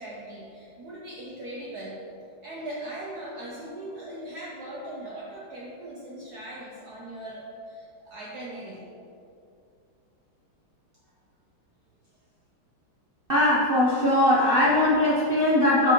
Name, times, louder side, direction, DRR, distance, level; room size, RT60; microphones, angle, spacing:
voice 1, 0.0-2.0 2.4-8.8, right 1 dB, 60° right, -4 dB, 1.2 m, -39 dB
voice 2, 13.3-15.9, left 1 dB, 80° right, -6 dB, 0.5 m, -20 dB
12.0 x 4.6 x 3.0 m, 2.6 s
omnidirectional pair, 2.3 m